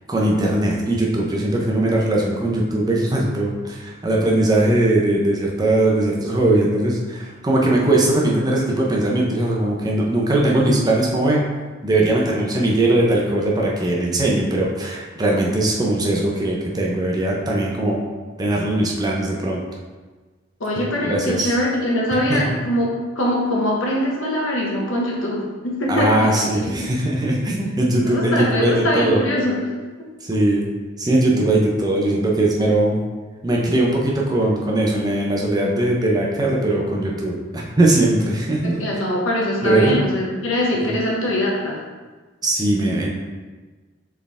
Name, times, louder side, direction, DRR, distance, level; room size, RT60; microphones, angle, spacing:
voice 1, 0.1-11.4 11.8-18.0 18.4-19.6 21.0-21.5 22.3-22.4 25.9-29.2 30.2-30.7 31.0-33.0 33.4-38.8 39.6-39.9 40.8-40.9 42.4-43.1, right 1 dB, 20° right, -2 dB, 0.6 m, -20 dB
voice 2, 20.6-26.4 26.8-26.9 28.0-29.7 30.0-30.1 38.6-41.8, left 1 dB, 85° left, -3 dB, 1.1 m, -22 dB
4.4 x 3.5 x 3.4 m, 1.3 s
head